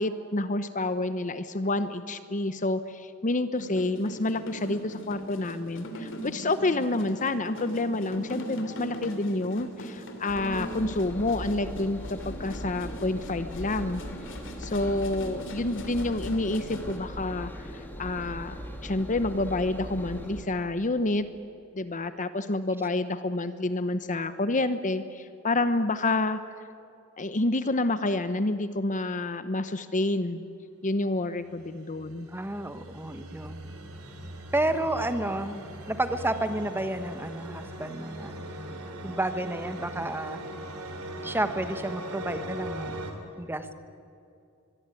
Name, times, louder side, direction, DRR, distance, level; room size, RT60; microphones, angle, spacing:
voice 1, 0.0-14.0 14.6-21.3 21.7-26.4 27.2-30.4 30.8-32.3, left 2 dB, 35° left, 11 dB, 0.9 m, -28 dB
sound 1, 3.6-17.0, equal, 60° left, 3.0 m, -40 dB
Engine, 10.3-20.4, equal, 10° left, 3.1 m, -40 dB
sound 2, 31.5-43.1, right 1 dB, 80° right, 3.5 m, -40 dB
voice 2, 32.3-33.6 34.5-38.5 39.0-40.4 41.2-43.0 43.4-43.7, right 1 dB, 10° right, 9 dB, 1.3 m, -31 dB
23.5 x 22.0 x 9.2 m, 2.6 s
head